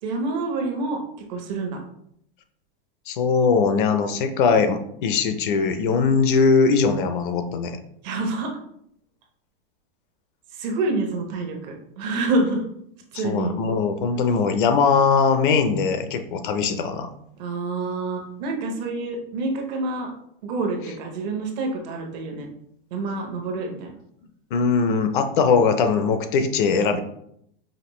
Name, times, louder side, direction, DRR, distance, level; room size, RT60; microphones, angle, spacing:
voice 1, 0.0-1.0 1.3-1.8 8.0-8.5 10.5-12.7 13.1-13.5 17.4-20.1 20.4-22.5 22.9-24.0, right 3 dB, 45° right, 2 dB, 1.0 m, -27 dB
voice 2, 3.1-7.8 13.2-17.1 24.5-27.0, left 5 dB, 55° left, 8 dB, 0.6 m, -20 dB
5.1 x 2.6 x 3.0 m, 0.71 s
supercardioid pair, 160°, 30 cm